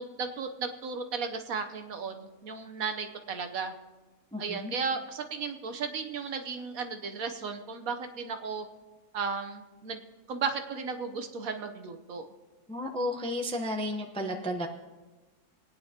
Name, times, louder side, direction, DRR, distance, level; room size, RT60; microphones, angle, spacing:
voice 1, 0.0-3.7 4.4-8.6 9.1-10.0 10.3-12.3, right 5 dB, 65° right, 6 dB, 1.3 m, -35 dB
voice 2, 4.3-4.7 12.7-14.7, left 1 dB, 5° left, 3 dB, 0.6 m, -33 dB
27.5 x 9.5 x 2.9 m, 1.2 s
omnidirectional pair, 1.7 m